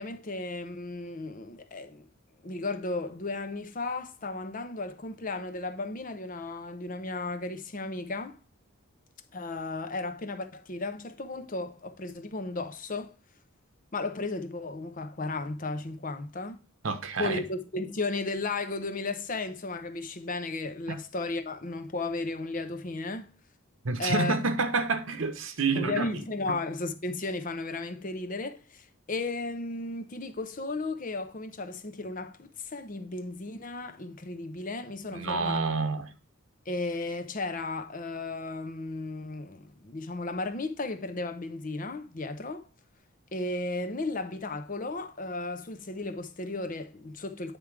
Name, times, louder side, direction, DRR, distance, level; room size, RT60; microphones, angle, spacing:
voice 1, 0.0-2.1 2.4-8.4 9.3-13.1 13.9-16.6 17.2-23.3 24.0-24.4 25.7-35.6 36.7-42.7 43.3-47.6, left 3 dB, 40° left, 0.7 m, -34 dB
voice 2, 16.8-17.4 23.8-26.1 35.1-36.1, right 4 dB, 75° right, 0.9 m, -28 dB
9.1 x 3.7 x 4.6 m
head